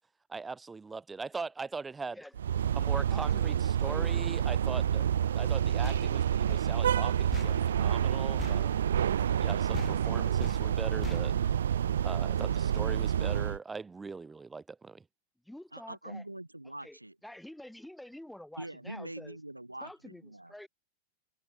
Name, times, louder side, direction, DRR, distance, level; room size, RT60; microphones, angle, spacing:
voice 1, 0.3-2.2 2.7-5.1 5.3-8.9 9.4-11.3 12.0-15.0, right 4 dB, 15° right, 1.0 m, -40 dB
sound 1, 2.4-13.6, right 9 dB, 65° right, 0.4 m, -28 dB
voice 2, 3.1-4.3 10.0-10.8 15.5-16.2 16.8-19.4 19.8-20.7, left 1 dB, 5° left, 1.9 m, -49 dB
sound 2, 5.8-9.5 9.7-12.2, left 7 dB, 20° left, 2.5 m, -43 dB
voice 3, 15.7-17.1 18.6-20.5, right 1 dB, 85° right, 4.4 m, -43 dB
figure-of-eight pair, 90°, 0 cm